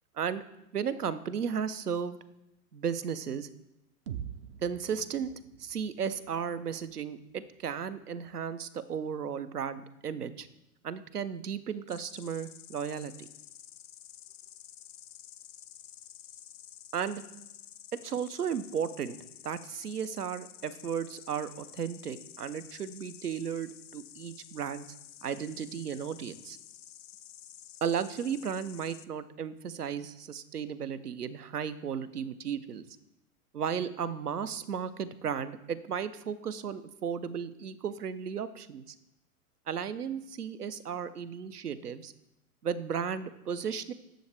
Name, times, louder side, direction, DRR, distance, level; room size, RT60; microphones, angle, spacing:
voice 1, 0.7-2.2 2.7-3.5 4.6-5.3 5.6-10.5 10.8-13.3 16.9-17.2 18.0-19.2 19.4-24.9 25.2-26.6 27.8-32.9 33.5-38.8 39.7-42.1 42.6-43.9, right 7 dB, 75° right, 13 dB, 0.8 m, -34 dB
sound 1, 4.1-8.0, right 9 dB, 40° right, 0.6 m, -46 dB
Insect, 11.9-29.1, left 11 dB, 55° left, 0.5 m, -51 dB
10.0 x 7.0 x 3.4 m, 0.88 s
figure-of-eight pair, 105°, 47 cm